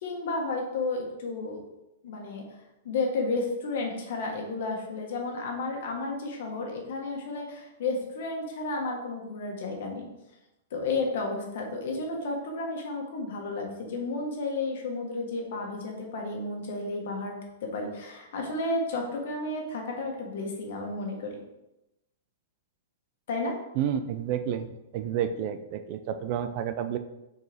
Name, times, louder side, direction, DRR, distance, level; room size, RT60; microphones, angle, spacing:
voice 1, 0.0-1.6 2.0-2.4 2.8-10.1 10.7-21.3 23.3-23.5, left 3 dB, 50° left, 1 dB, 1.5 m, -32 dB
voice 2, 23.8-27.0, right 9 dB, 30° right, 9 dB, 0.3 m, -30 dB
6.4 x 4.5 x 3.5 m, 0.92 s
hypercardioid pair, 175°, 0 cm